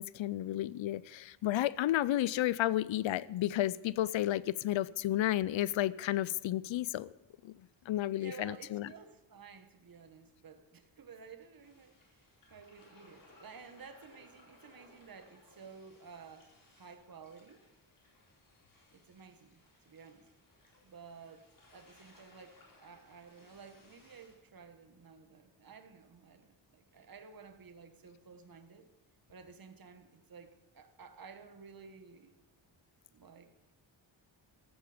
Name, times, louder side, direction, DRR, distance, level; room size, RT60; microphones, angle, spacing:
voice 1, 0.0-7.1 7.4-7.5 7.9-8.9, left 13 dB, 75° left, 20 dB, 0.5 m, -32 dB
voice 2, 8.2-17.6 18.9-20.3 20.8-28.9 29.3-32.4 33.1-33.5, right 5 dB, 45° right, 8 dB, 1.4 m, -53 dB
sound 1, 11.6-24.3, left 2 dB, 45° left, 4.4 m, -64 dB
14.0 x 13.5 x 5.1 m, 0.98 s
wide cardioid pair, 120°, 47 cm